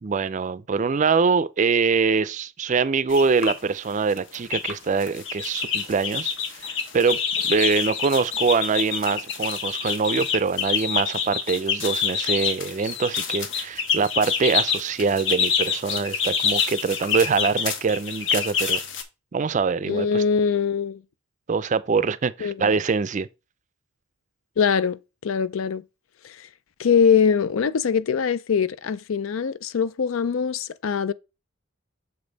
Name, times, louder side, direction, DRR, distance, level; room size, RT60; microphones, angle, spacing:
voice 1, 0.0-6.7 6.9-7.2 7.4-18.8 19.3-20.2 21.5-23.3, right 5 dB, 35° right, 0.4 m, -24 dB
sound 1, 3.1-3.6 4.1-4.7 5.0-19.0, left 6 dB, 60° left, 1.0 m, -26 dB
voice 2, 19.8-21.0 22.4-22.7 24.6-25.8 26.2-26.4 26.8-31.1, left 6 dB, 80° left, 0.4 m, -22 dB
6.8 x 5.2 x 4.0 m
head